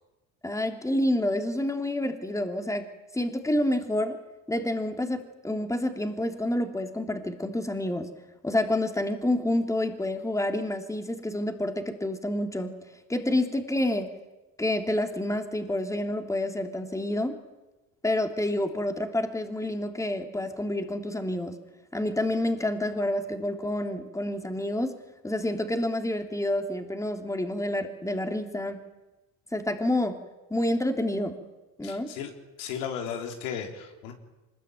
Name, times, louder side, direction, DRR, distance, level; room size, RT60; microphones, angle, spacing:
voice 1, 0.4-2.9 3.1-4.2 4.5-8.1 8.4-12.7 13.1-14.1 14.6-17.4 18.0-21.6 21.9-25.0 25.2-28.8 29.5-30.2 30.5-31.3 31.8-32.1, left 1 dB, 10° left, 5 dB, 3.4 m, -28 dB
voice 2, 31.8-32.3 32.6-34.1, left 8 dB, 75° left, 4 dB, 3.8 m, -35 dB
25.0 x 21.5 x 9.4 m, 1.1 s
hypercardioid pair, 75°, 40 cm